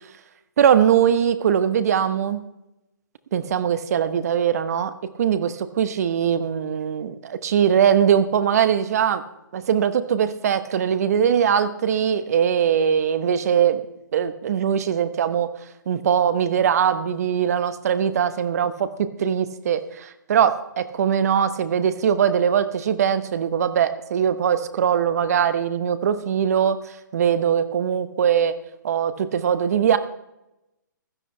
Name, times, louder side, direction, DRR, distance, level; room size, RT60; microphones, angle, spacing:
voice 1, 0.6-2.4 3.3-9.2 9.5-13.8 14.1-15.5 15.9-28.5 28.8-30.0, right 8 dB, 50° right, 12 dB, 0.9 m, -21 dB
16.0 x 13.0 x 3.3 m, 0.91 s
figure-of-eight pair, 135°, 11 cm